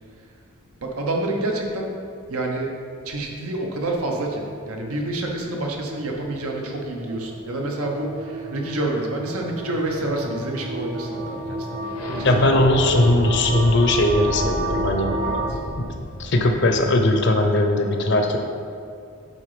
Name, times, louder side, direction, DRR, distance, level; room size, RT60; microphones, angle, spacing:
voice 1, 0.8-1.9 2.3-2.7 3.0-11.9 12.2-12.5 15.2-15.6, right 2 dB, 80° right, 1 dB, 1.0 m, -28 dB
sound 1, 3.5-15.5, right 2 dB, 40° right, 0.5 m, -33 dB
sound 2, 7.4-17.5, left 1 dB, 85° left, 1.0 m, -34 dB
voice 2, 12.2-15.2 16.2-18.4, left 1 dB, 55° left, 4 dB, 0.7 m, -19 dB
8.3 x 3.9 x 5.0 m, 2.4 s
head